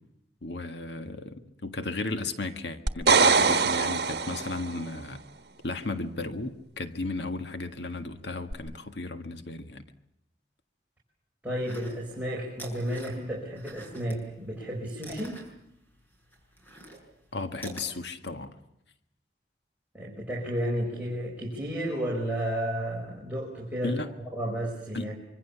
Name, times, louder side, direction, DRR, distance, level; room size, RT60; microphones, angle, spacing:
voice 1, 0.4-5.2 5.6-9.8 17.3-18.5 23.8-24.1 24.9-25.1, left 2 dB, 85° left, 8 dB, 1.7 m, -34 dB
sound 1, 2.9-4.8 8.5-8.6, right 4 dB, 65° right, 1.4 m, -23 dB
voice 2, 11.4-15.4 19.9-24.0 24.3-25.2, equal, 10° right, -4 dB, 5.3 m, -32 dB
sound 2, 11.6-12.2 12.5-14.2 14.5-17.9, right 1 dB, 10° left, 6.2 m, -44 dB
26.0 x 25.0 x 7.2 m, 0.79 s
head